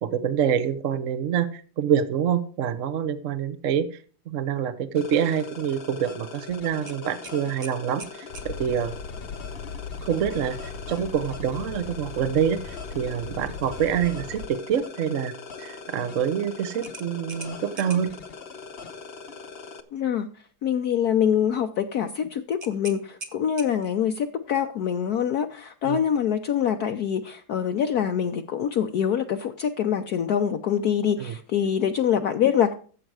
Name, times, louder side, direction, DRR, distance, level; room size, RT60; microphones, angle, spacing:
voice 1, 0.0-4.0 4.3-8.9 10.0-15.3 15.6-18.1 25.8-26.0 31.2-31.4, right 8 dB, 50° right, 12 dB, 1.1 m, -26 dB
sound 1, 4.9-19.8, left 5 dB, 40° left, 0.9 m, -41 dB
sound 2, 6.9-8.5 11.1-11.4 11.8-11.9 16.8-18.2 22.6-24.0, right 3 dB, 30° right, 1.3 m, -42 dB
sound 3, 8.3-14.5, left 5 dB, 80° left, 1.6 m, -38 dB
voice 2, 19.9-20.3 20.6-32.7, left 8 dB, 65° left, 6 dB, 1.1 m, -25 dB
14.0 x 7.8 x 4.8 m, 0.41 s
omnidirectional pair, 2.1 m